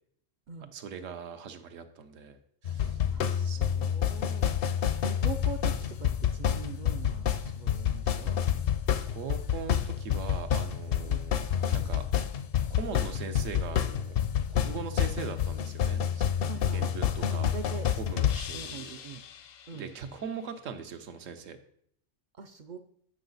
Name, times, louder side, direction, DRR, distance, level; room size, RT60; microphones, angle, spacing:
voice 1, 0.7-3.0 3.5-3.6 9.1-12.1 12.7-14.2 14.5-17.5 18.0-18.9 19.7-21.6, right 6 dB, 80° right, 8 dB, 1.1 m, -41 dB
sound 1, 2.6-19.3, left 9 dB, 60° left, 0.7 m, -29 dB
voice 2, 3.1-4.6 5.0-8.4 10.9-11.2 16.5-16.9 17.3-18.3 18.5-19.2 19.7-19.9 22.3-22.8, right 6 dB, 65° right, 8 dB, 0.4 m, -43 dB
8.8 x 5.6 x 4.0 m, 0.68 s
omnidirectional pair, 1.3 m